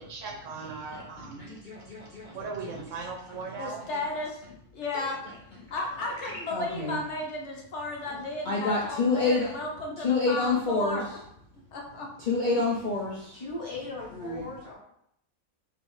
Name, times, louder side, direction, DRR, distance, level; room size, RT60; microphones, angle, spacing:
voice 1, 0.0-1.5 2.3-3.8, right 4 dB, 70° right, 2 dB, 0.9 m, -38 dB
voice 2, 1.4-2.4 2.6-2.7 4.9-5.1 6.1-7.0 8.1-8.2 8.4-9.6 10.0-11.2 12.2-13.4 14.1-14.5, left 3 dB, 80° left, -3 dB, 0.4 m, -28 dB
voice 3, 3.6-4.4 4.7-5.2 5.7-11.0 11.7-12.1, left 2 dB, 65° left, 0 dB, 0.8 m, -34 dB
voice 4, 13.3-14.7, left 2 dB, 35° left, -5 dB, 0.6 m, -38 dB
3.8 x 3.0 x 3.0 m, 0.75 s
omnidirectional pair, 1.5 m